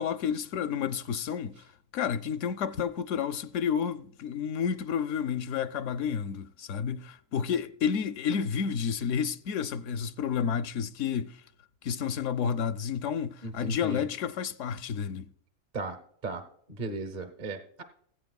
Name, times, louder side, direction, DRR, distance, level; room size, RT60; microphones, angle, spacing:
voice 1, 0.0-1.6 1.9-11.4 11.8-15.3, left 7 dB, 70° left, 0.9 m, -30 dB
voice 2, 13.4-14.1 15.7-16.0 16.2-16.4 16.8-17.8, right 2 dB, 40° right, 0.9 m, -36 dB
20.5 x 8.5 x 2.3 m
omnidirectional pair, 1.4 m